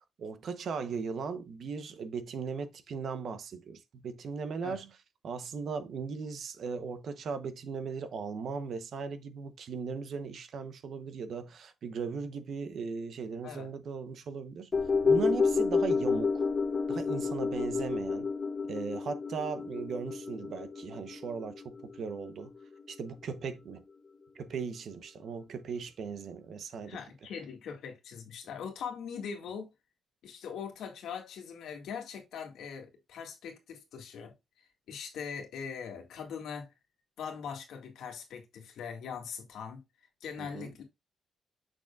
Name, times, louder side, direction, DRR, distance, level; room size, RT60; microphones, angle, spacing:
voice 1, 0.2-4.9 5.2-14.7 15.0-16.5 16.9-18.3 18.7-22.5 22.9-23.8 24.3-27.0 40.4-40.7, right 5 dB, 60° right, 0.8 m, -38 dB
sound 1, 14.7-23.2 23.5-23.6, left 4 dB, 35° left, 1.7 m, -30 dB
voice 2, 26.8-29.7 30.2-36.7 37.2-39.8 40.2-40.8, left 7 dB, 80° left, 1.8 m, -41 dB
6.4 x 6.3 x 2.3 m
cardioid pair, 120°, 0 cm